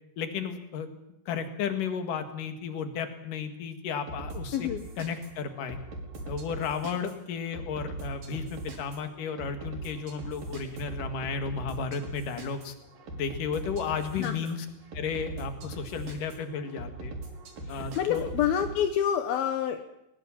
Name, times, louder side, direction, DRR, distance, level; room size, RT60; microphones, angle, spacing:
voice 1, 0.2-0.9 1.3-4.7 5.0-5.8 6.3-12.7 13.2-14.7 14.9-17.1 17.7-18.3, left 6 dB, 55° left, 7 dB, 3.0 m, -33 dB
sound 1, 4.1-18.8, right 2 dB, 45° right, 5.2 m, -40 dB
voice 2, 4.5-4.8 14.1-14.4 17.7-20.0, left 9 dB, 70° left, 7 dB, 2.3 m, -28 dB
22.0 x 20.5 x 7.3 m, 0.80 s
omnidirectional pair, 5.6 m